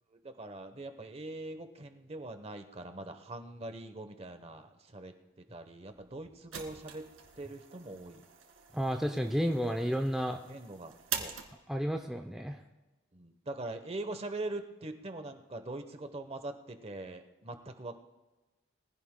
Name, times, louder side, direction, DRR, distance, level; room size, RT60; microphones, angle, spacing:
voice 1, 0.1-7.1 7.4-8.3 10.5-11.4 13.1-18.0, right 2 dB, 30° right, 8 dB, 0.9 m, -42 dB
sound 1, 5.9-11.9, right 8 dB, 85° right, 2.0 m, -44 dB
voice 2, 8.7-10.4 11.7-12.6, equal, ahead, 2 dB, 0.5 m, -31 dB
22.5 x 16.0 x 2.2 m, 1.1 s
head